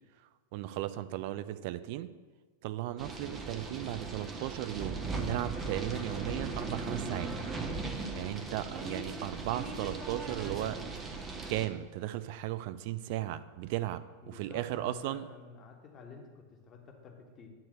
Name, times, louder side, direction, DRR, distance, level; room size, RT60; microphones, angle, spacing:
voice 1, 0.5-2.1 2.6-7.3 8.2-10.8 11.5-15.2, right 14 dB, 45° right, 13 dB, 0.3 m, -36 dB
sound 1, 3.0-11.7, right 3 dB, 20° right, 0.8 m, -38 dB
voice 2, 14.2-17.5, left 4 dB, 25° left, 1 dB, 1.2 m, -51 dB
9.4 x 3.3 x 6.5 m, 1.4 s
figure-of-eight pair, 90°, 0 cm